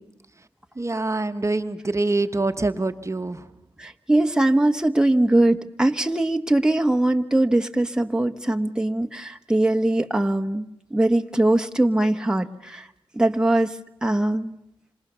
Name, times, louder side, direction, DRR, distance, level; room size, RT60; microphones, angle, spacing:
voice 1, 0.8-3.5, right 2 dB, 30° right, 8 dB, 1.1 m, -25 dB
voice 2, 3.8-10.6 10.9-12.9 13.2-13.7 14.0-14.6, right 1 dB, 10° right, 5 dB, 1.1 m, -21 dB
26.5 x 26.5 x 6.8 m, 0.83 s
cardioid pair, 60°, 10 cm